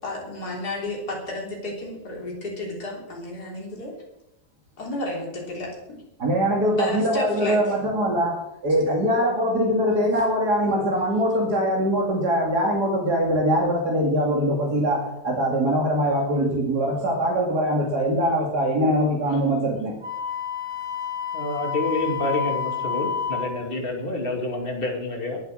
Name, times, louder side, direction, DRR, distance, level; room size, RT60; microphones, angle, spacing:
voice 1, 0.0-3.9 4.8-6.0 6.7-7.8 19.3-19.4, left 1 dB, 80° left, -2 dB, 4.0 m, -32 dB
voice 2, 6.2-20.0, equal, 90° right, -1 dB, 3.0 m, -22 dB
Wind instrument woodwind instrument, 20.0-23.6, left 7 dB, 60° right, 4.6 m, -29 dB
voice 3, 21.3-25.4, left 2 dB, 35° left, 2 dB, 2.8 m, -28 dB
21.5 x 8.0 x 6.4 m, 0.87 s
omnidirectional pair, 1.7 m